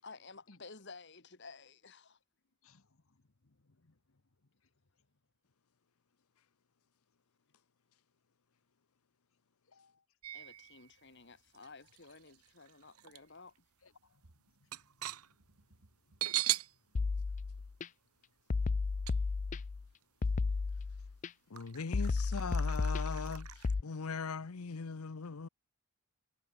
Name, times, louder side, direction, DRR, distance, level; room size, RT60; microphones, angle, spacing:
voice 1, 0.0-2.2 10.3-13.6, left 4 dB, 50° left, 1.9 m, -53 dB
voice 2, 2.6-3.2 3.4-4.2 9.7-10.0 13.8-14.2 14.6-14.7 15.0-15.1, left 4 dB, 65° left, 1.2 m, -68 dB
sound 1, 10.2-11.0 11.5-13.2 13.6-13.7 14.1-16.7 17.1-17.2 19.1-19.2 20.0-20.1 20.7-20.8 21.6-23.7, right 14 dB, 85° right, 1.7 m, -40 dB
sound 2, 17.0-17.9 18.5-19.9 20.2-21.3 21.9-23.8, left 4 dB, 35° left, 0.3 m, -33 dB
voice 3, 21.5-25.5, left 5 dB, 85° left, 0.8 m, -40 dB
head